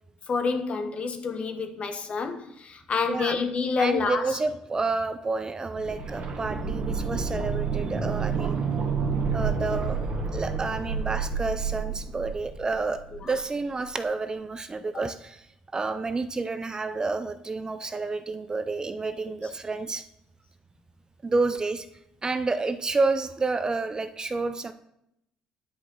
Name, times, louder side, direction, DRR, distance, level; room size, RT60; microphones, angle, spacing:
voice 1, 0.3-4.3 8.3-8.5 13.2-13.4, left 5 dB, 45° left, 1.2 m, -28 dB
voice 2, 3.8-8.6 9.3-10.0 10.3-15.4 15.7-20.1 21.2-21.9 22.2-24.7, right 3 dB, 25° right, 0.5 m, -29 dB
sound 1, 5.7-13.5 13.8-13.9, right 5 dB, 50° right, 1.5 m, -29 dB
10.0 x 4.9 x 3.9 m
supercardioid pair, 70°, 3 cm